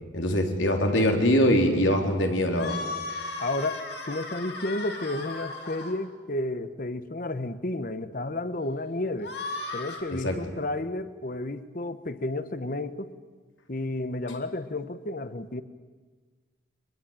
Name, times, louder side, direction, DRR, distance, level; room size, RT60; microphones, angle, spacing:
voice 1, 0.1-2.8 10.2-10.4, equal, 85° left, 3 dB, 3.8 m, -23 dB
sound 1, 2.5-5.9 9.2-10.0, left 3 dB, 60° left, 4.5 m, -36 dB
voice 2, 3.4-9.4 9.7-13.1 13.7-15.6, left 2 dB, 45° left, 12 dB, 1.1 m, -32 dB
24.0 x 21.5 x 9.1 m, 1.4 s
head